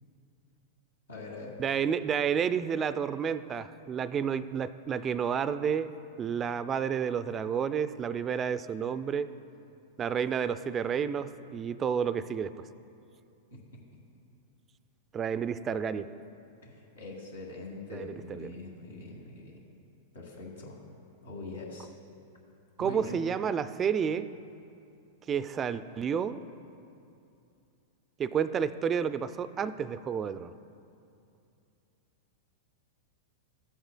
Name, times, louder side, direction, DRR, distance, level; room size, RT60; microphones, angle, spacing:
voice 1, 1.1-1.6 13.5-13.6 16.6-19.6 20.1-20.8 21.2-21.9 22.8-23.2, left 2 dB, 90° left, -1 dB, 1.7 m, -43 dB
voice 2, 1.6-5.9 6.2-9.3 10.0-12.5 15.1-16.1 17.9-18.5 22.8-24.3 25.3-26.4 28.2-30.5, right 7 dB, 25° right, 13 dB, 0.3 m, -30 dB
14.5 x 7.9 x 2.2 m, 2.6 s
hypercardioid pair, 110°, 0 cm